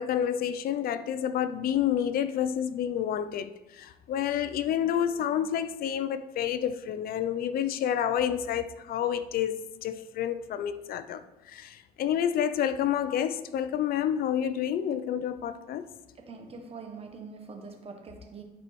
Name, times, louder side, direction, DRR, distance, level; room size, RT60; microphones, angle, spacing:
voice 1, 0.0-3.5 3.8-11.2 11.5-15.8, left 9 dB, 60° left, 0.6 m, -29 dB
voice 2, 16.2-18.4, right 4 dB, 35° right, 1.3 m, -44 dB
10.5 x 4.5 x 4.3 m
cardioid pair, 110°, 17 cm